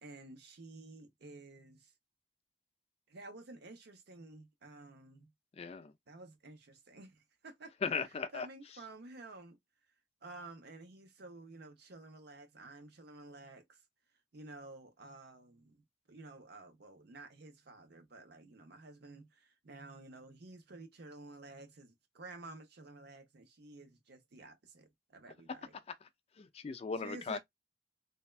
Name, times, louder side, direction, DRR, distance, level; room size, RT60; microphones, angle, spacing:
voice 1, 0.0-1.9 3.1-5.3 6.1-8.0 8.3-9.6 10.2-13.8 14.3-25.8 27.0-27.4, right 2 dB, 60° right, 0.7 m, -52 dB
voice 2, 5.5-5.9 7.8-8.5 26.4-27.4, left 5 dB, 35° left, 0.3 m, -37 dB
3.4 x 2.1 x 2.2 m
head